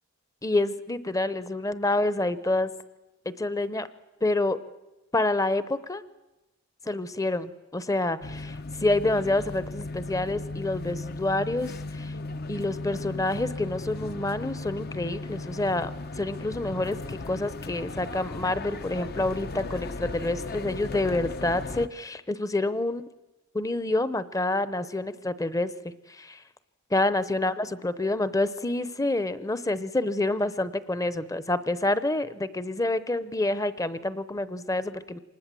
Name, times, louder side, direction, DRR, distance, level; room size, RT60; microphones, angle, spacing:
voice 1, 0.4-2.7 3.3-3.9 4.2-4.6 5.1-6.0 6.9-12.1 12.5-23.0 23.5-25.7 26.1-26.4 26.9-35.2, left 2 dB, 15° left, 14 dB, 0.8 m, -28 dB
sound 1, 8.2-21.9, left 2 dB, 50° left, 0.8 m, -36 dB
25.0 x 20.0 x 7.6 m, 1.1 s
head